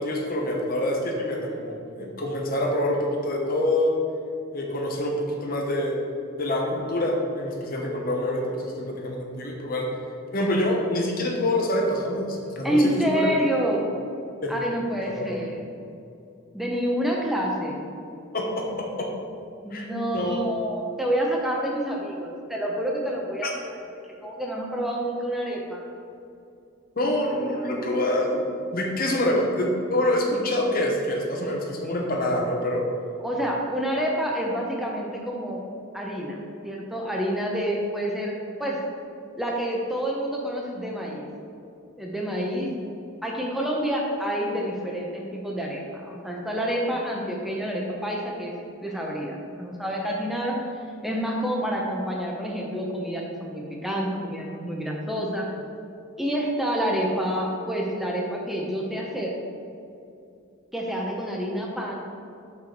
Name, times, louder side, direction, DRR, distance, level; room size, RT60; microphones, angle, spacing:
voice 1, 0.0-4.0 4.5-5.9 6.4-9.9 10.3-13.3 14.4-14.6 15.0-15.4 18.3-18.6 19.0-19.1 19.7-19.9 20.1-20.4 23.4-23.5 27.0-32.8, left 1 dB, 45° left, 0 dB, 1.0 m, -26 dB
voice 2, 12.6-13.8 14.5-15.6 16.5-17.8 19.6-23.5 23.9-25.8 33.2-35.6 35.9-36.4 36.6-38.8 39.4-41.2 42.0-42.7 43.2-50.7 51.0-55.5 56.2-59.4 60.7-61.9, equal, ahead, -2 dB, 0.6 m, -28 dB
6.3 x 5.8 x 3.9 m, 2.6 s
head